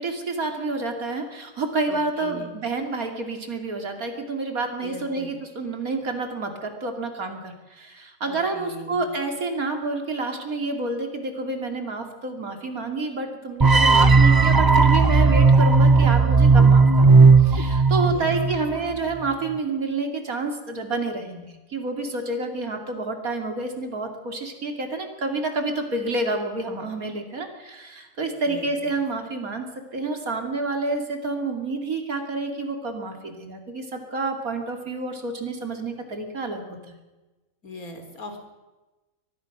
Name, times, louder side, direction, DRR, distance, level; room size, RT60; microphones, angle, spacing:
voice 1, 0.0-37.0, right 3 dB, 85° right, 4 dB, 3.3 m, -29 dB
voice 2, 1.9-2.5 4.8-5.3 8.3-9.0 18.0-18.4 28.5-28.9 37.6-38.4, equal, 85° left, 5 dB, 3.8 m, -39 dB
sound 1, 13.6-18.7, right 4 dB, 25° right, 0.5 m, -15 dB
23.0 x 20.0 x 6.1 m, 1.1 s
omnidirectional pair, 1.5 m